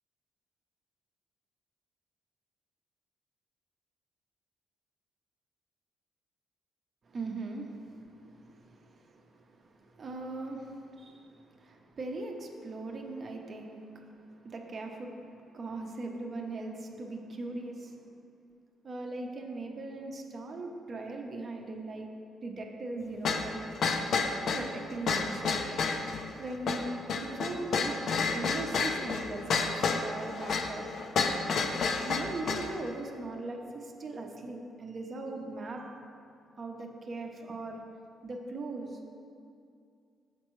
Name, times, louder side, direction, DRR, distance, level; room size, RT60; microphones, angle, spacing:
voice 1, 7.0-18.1 18.8-22.1 22.4-23.6 24.0-28.0 28.3-30.9 32.0-36.1 36.6-37.8 38.2-39.0, right 2 dB, 45° right, 2 dB, 0.6 m, -40 dB
sound 1, 23.2-32.7, left 4 dB, 60° left, 0.4 m, -30 dB
6.3 x 5.2 x 3.0 m, 2.5 s
cardioid pair, 95°, 0 cm